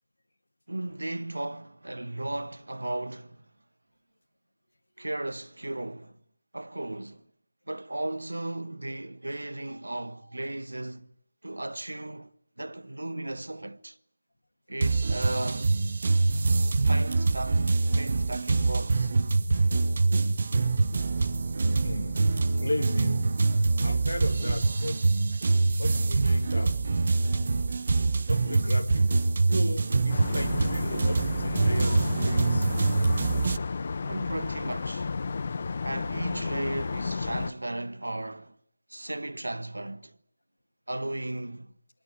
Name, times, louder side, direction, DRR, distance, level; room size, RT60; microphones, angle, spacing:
voice 1, 0.7-3.4 5.0-6.2 6.5-7.3 7.7-11.1 11.4-12.3 12.6-14.0 14.7-15.8 16.8-17.7 18.0-19.2 25.5-25.7 34.0-35.1 35.8-38.6 38.9-40.2 40.9-41.7, right 1 dB, 75° right, 1.4 m, -36 dB
sound 1, 14.8-33.6, right 3 dB, 45° right, 1.2 m, -25 dB
voice 2, 21.7-23.4 23.8-25.1 25.8-26.8 28.3-32.7, left 1 dB, 70° left, 2.0 m, -35 dB
sound 2, 30.1-37.5, left 4 dB, 40° left, 1.2 m, -32 dB
29.0 x 23.0 x 8.1 m
figure-of-eight pair, 160°, 0 cm